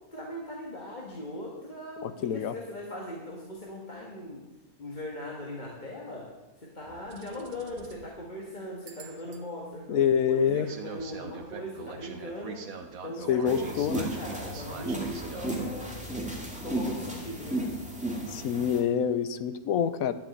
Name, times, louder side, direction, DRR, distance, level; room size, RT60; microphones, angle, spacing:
voice 1, 0.1-4.4 4.8-12.7 13.0-16.3 16.6-17.7, left 1 dB, 30° left, -2 dB, 1.9 m, -40 dB
voice 2, 2.0-2.5 9.9-10.7 13.3-14.1 18.3-20.1, left 8 dB, 75° left, 12 dB, 1.2 m, -26 dB
sound 1, 6.8-8.1 8.9-9.4 10.5-15.5, right 5 dB, 70° right, 1.6 m, -43 dB
sound 2, 13.5-18.8, right 1 dB, 5° right, 2.3 m, -34 dB
12.0 x 7.3 x 9.1 m, 1.1 s
omnidirectional pair, 1.5 m